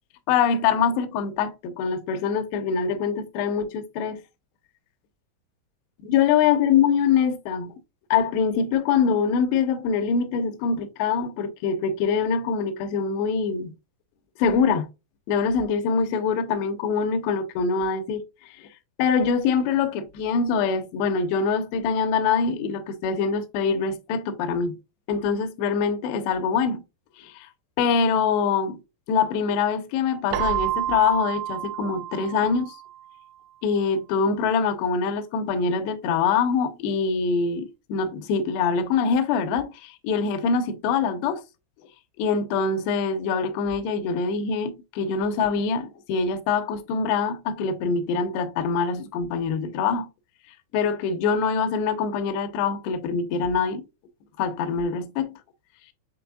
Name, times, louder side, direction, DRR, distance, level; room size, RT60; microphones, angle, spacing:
voice 1, 0.3-4.2 6.1-7.7 8.1-13.7 14.4-14.9 15.3-18.2 18.6-18.7 19.0-24.8 25.1-26.8 27.2-27.5 27.8-28.8 29.1-32.8 33.6-41.4 42.2-50.1 50.7-53.8 54.4-55.4, left 6 dB, 85° left, 2.5 m, -24 dB
Keyboard (musical), 30.3-33.0, right 11 dB, 90° right, 3.1 m, -29 dB
7.0 x 3.3 x 2.3 m
omnidirectional pair, 5.4 m